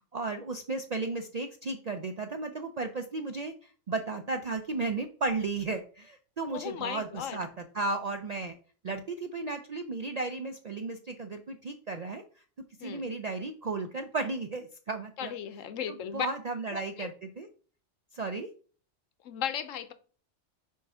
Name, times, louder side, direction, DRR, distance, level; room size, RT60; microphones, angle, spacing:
voice 1, 0.1-8.6 8.8-12.2 12.8-15.3 15.9-17.5 18.1-18.5, right 3 dB, 65° right, 7 dB, 0.4 m, -34 dB
voice 2, 6.5-7.5 12.8-13.1 15.2-16.3 16.7-17.1 19.2-19.9, left 9 dB, 90° left, 12 dB, 1.1 m, -36 dB
4.6 x 4.6 x 5.4 m, 0.41 s
omnidirectional pair, 1.3 m